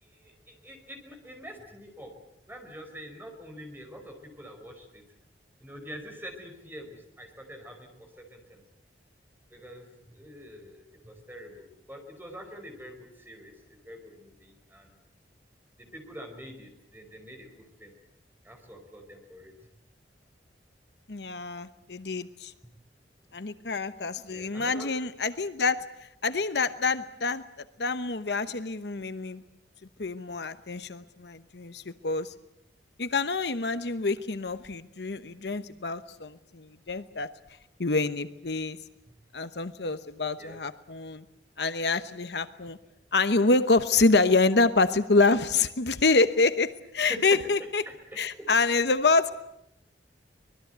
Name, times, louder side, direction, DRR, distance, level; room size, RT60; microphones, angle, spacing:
voice 1, 0.0-2.1 2.5-5.0 5.6-7.9 8.2-8.6 9.5-14.9 15.9-17.9 18.4-19.5 24.3-24.9 40.4-40.6 47.0-47.4 47.8-47.9, equal, 10° right, 3 dB, 5.1 m, -45 dB
voice 2, 21.1-22.5 23.3-25.9 26.2-27.4 27.8-29.4 30.0-32.3 33.0-37.3 37.8-38.8 39.3-41.2 41.6-42.8 43.1-47.8 48.2-49.3, left 3 dB, 70° left, 12 dB, 1.0 m, -26 dB
24.5 x 20.5 x 8.1 m, 0.81 s
head